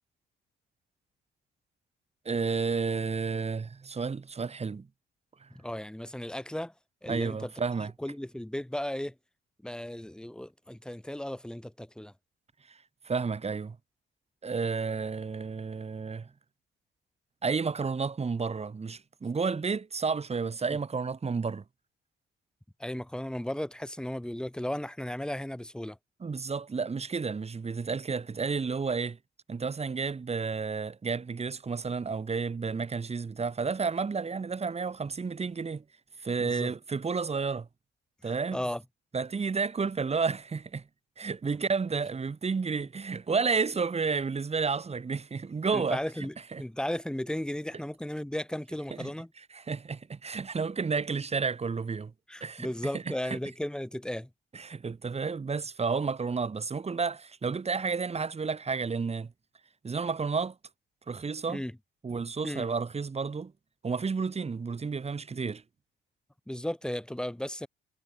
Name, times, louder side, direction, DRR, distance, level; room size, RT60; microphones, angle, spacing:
voice 1, 2.2-4.9 5.4-5.5 7.1-7.9 12.7-12.8 13.0-13.8 14.4-16.3 17.4-21.6 26.2-29.2 29.5-35.8 36.2-37.7 38.2-38.6 39.1-40.8 41.2-46.0 46.5-46.6 48.9-49.1 49.5-52.1 52.4-52.7 52.9-53.4 54.5-59.3 59.8-60.5 61.1-61.6 62.0-63.5 63.8-65.6, right 5 dB, 30° right, 2.9 m, -31 dB
voice 2, 5.5-6.7 7.0-7.5 8.0-9.1 9.6-12.1 22.8-26.0 36.4-36.7 38.2-38.8 45.7-49.3 52.3-54.3 61.5-61.8 62.4-62.6 66.5-67.7, left 1 dB, 5° left, 2.0 m, -35 dB
cardioid pair, 90°, 20 cm